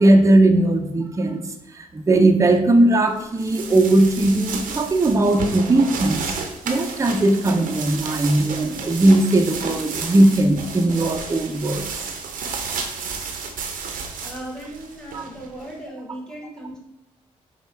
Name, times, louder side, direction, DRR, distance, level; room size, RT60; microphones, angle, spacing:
voice 1, 0.0-1.4 1.7-6.4 6.6-11.9 15.1-15.3, right 1 dB, 20° right, 5 dB, 0.5 m, -18 dB
sound 1, 3.2-15.7, right 5 dB, 70° right, 0.6 m, -32 dB
voice 2, 14.2-16.8, right 1 dB, 5° left, -3 dB, 1.4 m, -37 dB
5.2 x 2.2 x 3.2 m, 0.89 s
hypercardioid pair, 45°, 14 cm